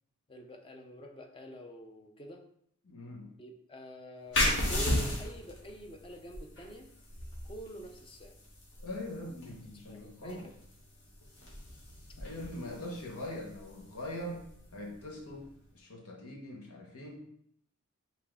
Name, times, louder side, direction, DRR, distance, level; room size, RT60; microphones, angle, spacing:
voice 1, 0.3-2.5 3.3-6.9 7.4-8.4 9.2-9.4 9.9-10.5, right 1 dB, 25° left, 3 dB, 0.5 m, -47 dB
voice 2, 2.8-3.3 8.8-10.5 12.2-14.5 14.7-17.3, left 1 dB, 90° left, -1 dB, 1.2 m, -42 dB
sound 1, 4.3-15.6, left 1 dB, 55° left, 1.3 m, -36 dB
5.0 x 2.8 x 3.6 m, 0.69 s
head